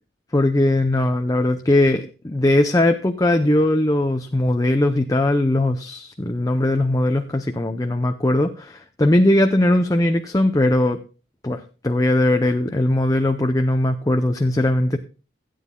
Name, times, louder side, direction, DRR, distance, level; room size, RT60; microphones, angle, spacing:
voice 1, 0.3-11.0 11.4-15.0, left 1 dB, 20° left, 6 dB, 0.6 m, -19 dB
17.5 x 9.3 x 2.2 m, 0.34 s
head